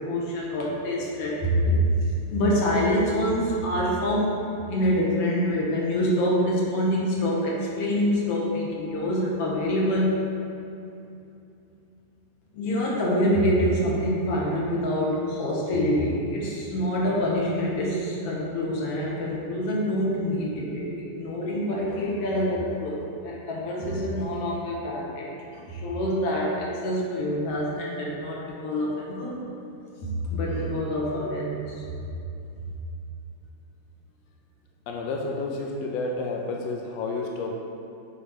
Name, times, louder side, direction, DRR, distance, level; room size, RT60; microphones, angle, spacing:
voice 1, 0.1-1.9 2.3-4.4 4.7-10.2 12.5-25.3 25.5-29.4 30.0-31.8, equal, 60° left, -4 dB, 1.9 m, -26 dB
voice 2, 34.9-37.5, left 3 dB, 85° left, 1 dB, 1.4 m, -30 dB
9.4 x 3.2 x 5.0 m, 2.7 s
omnidirectional pair, 3.6 m